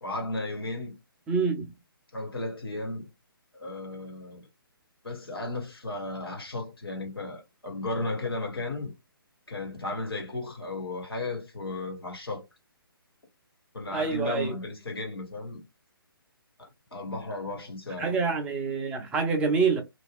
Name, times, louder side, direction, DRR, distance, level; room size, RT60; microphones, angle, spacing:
voice 1, 0.0-0.9 2.1-3.1 3.5-4.5 5.0-8.9 9.5-12.5 13.7-15.6 16.6-18.1, left 2 dB, 80° left, 1.3 m, -34 dB
voice 2, 1.3-1.8 13.9-14.5 18.0-19.8, right 4 dB, 10° right, 0.4 m, -26 dB
2.5 x 2.3 x 3.5 m
figure-of-eight pair, 140°, 12 cm